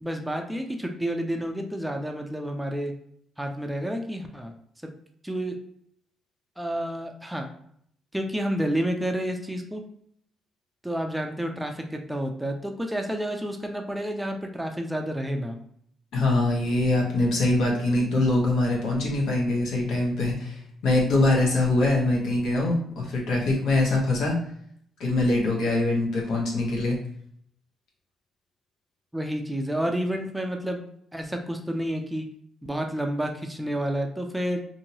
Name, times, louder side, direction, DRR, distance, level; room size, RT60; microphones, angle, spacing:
voice 1, 0.0-2.9 3.4-4.5 5.2-5.6 6.6-7.5 8.1-9.8 10.8-15.6 29.1-30.8 31.1-32.3 32.6-34.6, equal, 5° right, 3 dB, 0.4 m, -30 dB
voice 2, 16.1-24.3 25.0-27.0, left 2 dB, 80° left, -2 dB, 1.0 m, -23 dB
2.8 x 2.6 x 2.7 m, 0.66 s
cardioid pair, 90°, 0 cm